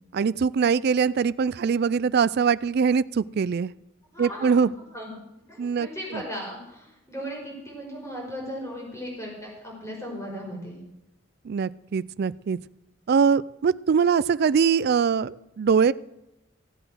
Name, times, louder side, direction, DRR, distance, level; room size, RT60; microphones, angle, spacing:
voice 1, 0.1-3.7 4.2-4.7 5.6-6.2 11.4-12.6 13.1-15.9, right 6 dB, 55° right, 19 dB, 0.4 m, -22 dB
voice 2, 4.1-5.2 5.5-10.8, equal, 15° left, -2 dB, 5.0 m, -37 dB
15.5 x 7.9 x 6.2 m, 0.91 s
head